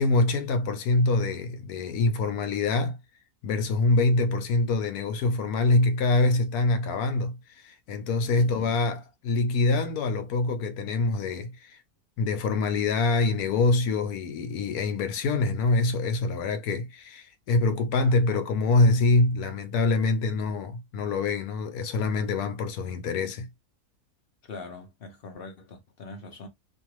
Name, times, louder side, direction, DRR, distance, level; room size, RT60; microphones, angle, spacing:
voice 1, 0.0-3.0 3.4-11.8 12.2-23.5, left 3 dB, 80° left, 1.2 m, -25 dB
voice 2, 8.3-8.7 24.4-26.5, left 3 dB, 50° left, 0.7 m, -42 dB
2.8 x 2.4 x 2.9 m
omnidirectional pair, 1.6 m